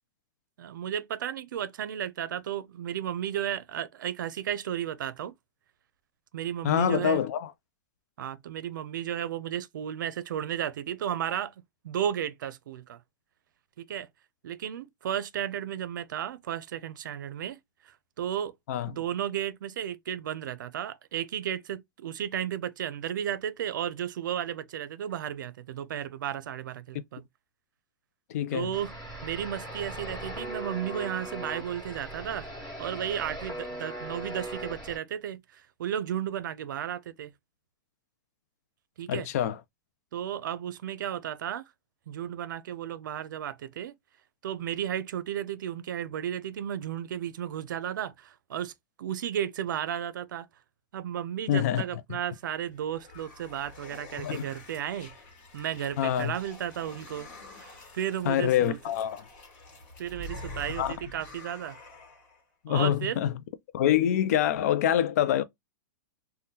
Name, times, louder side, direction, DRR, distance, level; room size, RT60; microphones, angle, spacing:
voice 1, 0.6-5.3 6.3-7.2 8.2-11.5 11.8-13.0 13.8-14.1 14.4-17.6 17.9-18.5 18.9-27.2 28.5-28.9 29.2-32.5 32.8-37.3 39.0-39.3 40.1-41.6 42.1-43.9 44.4-48.7 49.0-50.5 50.9-55.1 55.5-57.3 57.6-57.7 57.9-58.8 60.0-61.8 62.7-63.2, right 10 dB, 75° right, 0.5 m, -34 dB
voice 2, 6.6-7.5 18.7-18.9 28.3-28.7 39.1-39.6 51.5-51.8 54.2-54.4 56.0-56.3 58.3-59.2 60.8-60.9 62.6-63.3 63.7-65.4, left 10 dB, 50° left, 0.4 m, -25 dB
sound 1, 28.7-35.0, right 1 dB, 5° left, 1.6 m, -39 dB
sound 2, 52.4-62.4, left 1 dB, 35° left, 1.2 m, -47 dB
3.6 x 2.2 x 2.7 m
supercardioid pair, 170°, 10 cm